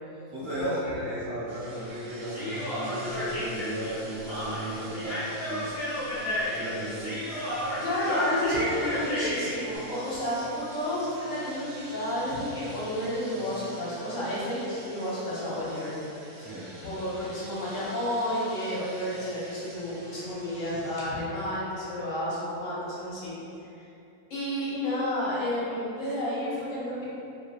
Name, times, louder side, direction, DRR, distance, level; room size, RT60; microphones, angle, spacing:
voice 1, 0.3-5.7 6.5-7.2 16.4-16.7, right 1 dB, 40° right, -11 dB, 0.8 m, -35 dB
sound 1, 1.5-21.1, right 1 dB, 75° right, 1.2 m, -45 dB
Human voice, 2.3-9.6, left 1 dB, 35° left, 0.5 m, -32 dB
voice 2, 7.8-15.9 16.8-23.3 23.7-23.8 24.3-27.1, left 1 dB, 60° left, -9 dB, 1.1 m, -31 dB
2.8 x 2.7 x 2.3 m, 2.7 s
omnidirectional pair, 1.7 m